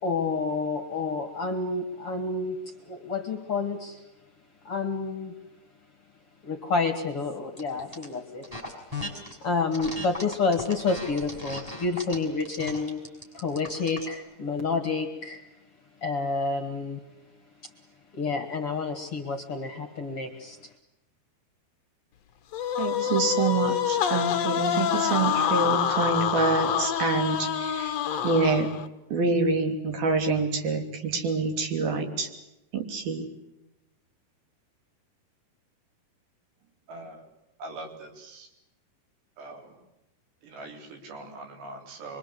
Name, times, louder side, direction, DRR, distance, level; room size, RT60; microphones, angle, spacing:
voice 1, 0.0-4.0 4.6-5.3 6.4-8.5 9.4-13.0 13.3-15.4 16.0-17.0 18.1-20.6, left 4 dB, 45° left, 5 dB, 2.2 m, -29 dB
sound 1, 7.6-8.1 8.4-9.4 9.7-14.1, left 2 dB, 10° right, 5.7 m, -37 dB
sound 2, 22.5-28.9, left 9 dB, 65° left, 1.7 m, -26 dB
voice 2, 22.8-27.9 28.2-28.7 29.1-32.3 32.7-33.3, right 4 dB, 60° right, 4 dB, 4.9 m, -26 dB
voice 3, 36.9-37.3 37.6-38.5 39.4-39.8 40.4-42.2, right 2 dB, 85° right, 3 dB, 6.0 m, -42 dB
25.5 x 24.0 x 8.2 m, 0.91 s
omnidirectional pair, 4.9 m